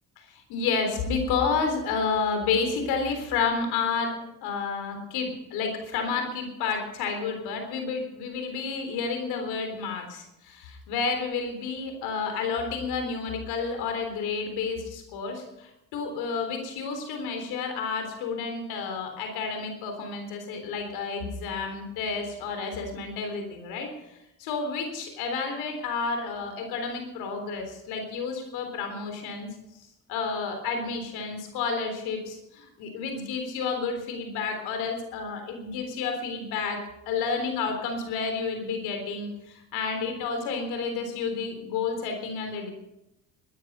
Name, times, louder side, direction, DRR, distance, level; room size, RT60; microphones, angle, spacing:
voice 1, 0.5-23.9 24.4-29.5 30.1-36.8 37.1-42.7, left 5 dB, 85° left, 5 dB, 3.7 m, -30 dB
20.0 x 10.5 x 5.5 m, 0.88 s
supercardioid pair, 75°, 37 cm